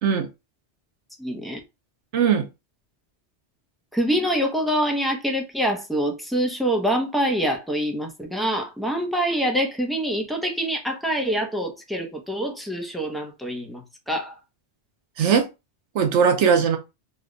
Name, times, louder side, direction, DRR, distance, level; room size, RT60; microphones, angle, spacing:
voice 1, 1.2-1.6 3.9-14.4, equal, ahead, 0.5 m, -25 dB
voice 2, 2.1-2.5 15.2-15.5 15.9-16.8, right 7 dB, 85° right, 1.0 m, -19 dB
3.4 x 2.2 x 3.8 m
omnidirectional pair, 1.2 m